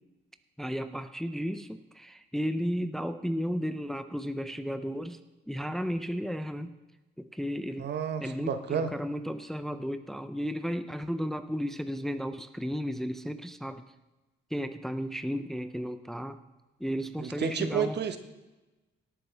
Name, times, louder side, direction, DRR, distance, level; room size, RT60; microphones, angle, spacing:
voice 1, 0.6-5.2 5.5-6.7 7.2-7.9 8.2-13.8 14.5-16.4 16.8-18.0, equal, ahead, 10 dB, 0.5 m, -34 dB
voice 2, 7.8-8.9 17.2-18.2, right 7 dB, 60° right, 9 dB, 1.1 m, -31 dB
18.0 x 8.9 x 3.4 m, 1.1 s
cardioid pair, 90°, 20 cm